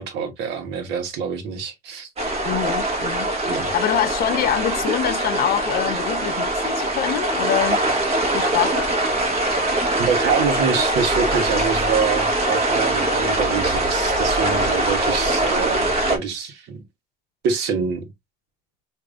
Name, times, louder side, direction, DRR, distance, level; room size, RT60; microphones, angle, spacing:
voice 1, 0.0-2.1 3.4-3.7 10.0-16.8 17.4-18.1, right 6 dB, 90° right, 1.1 m, -25 dB
sound 1, 2.2-16.2, right 1 dB, 40° right, 1.4 m, -22 dB
voice 2, 2.4-3.3 3.6-7.8 8.3-8.9, left 11 dB, 65° left, 0.7 m, -25 dB
4.8 x 2.6 x 2.5 m
cardioid pair, 110°, 17 cm